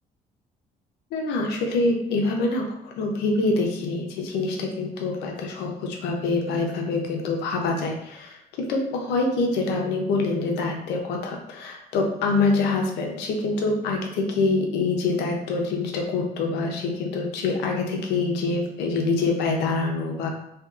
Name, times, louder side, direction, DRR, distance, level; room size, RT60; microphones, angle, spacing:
voice 1, 1.1-20.3, left 3 dB, 85° left, 1 dB, 0.6 m, -25 dB
2.6 x 2.3 x 2.4 m, 0.84 s
cardioid pair, 110°, 17 cm